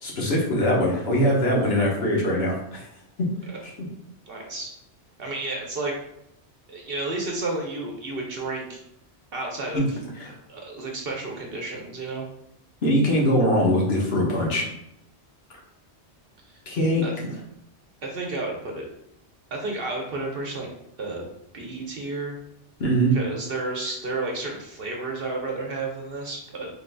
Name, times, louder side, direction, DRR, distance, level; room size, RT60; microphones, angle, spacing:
voice 1, 0.0-2.8 3.2-3.3 3.6-3.7 9.7-9.8 10.2-10.3 12.8-14.6 16.7-17.0 22.8-23.2, equal, 65° left, -3 dB, 1.3 m, -22 dB
voice 2, 4.3-4.7 5.2-6.0 6.7-8.8 9.3-10.0 10.5-12.3 16.5-16.6 17.0-17.1 18.0-18.9 19.5-20.7 21.0-22.4 23.1-26.7, right 2 dB, 60° right, 0 dB, 0.9 m, -31 dB
4.8 x 3.7 x 2.2 m, 0.77 s
omnidirectional pair, 1.1 m